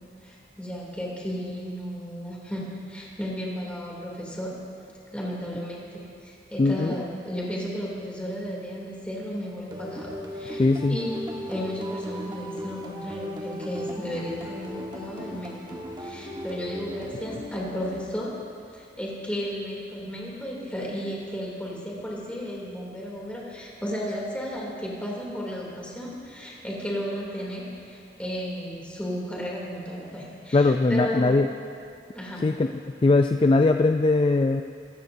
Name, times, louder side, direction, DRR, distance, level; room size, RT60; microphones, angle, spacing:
voice 1, 0.2-4.5 5.1-15.6 16.0-18.3 18.7-31.3 32.1-32.4, equal, 5° left, -4 dB, 2.8 m, -34 dB
voice 2, 6.6-6.9 10.6-11.0 30.5-31.5 32.4-32.7 33.0-34.6, left 3 dB, 30° left, 6 dB, 0.3 m, -20 dB
sound 1, 9.7-18.6, equal, 25° right, 1.3 m, -37 dB
24.0 x 13.5 x 2.7 m, 2.4 s
head